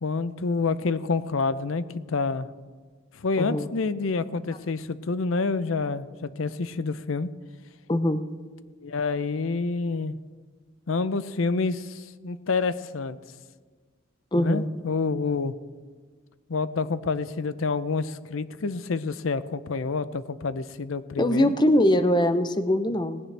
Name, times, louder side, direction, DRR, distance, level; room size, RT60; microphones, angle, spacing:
voice 1, 0.0-2.5 3.2-7.3 8.8-10.2 10.9-13.2 14.3-15.5 16.5-21.5, left 4 dB, 80° left, 14 dB, 0.6 m, -28 dB
voice 2, 3.4-3.7 7.9-8.2 14.3-14.7 21.2-23.2, left 1 dB, 20° left, 10 dB, 0.6 m, -22 dB
18.5 x 16.5 x 3.4 m, 1.5 s
head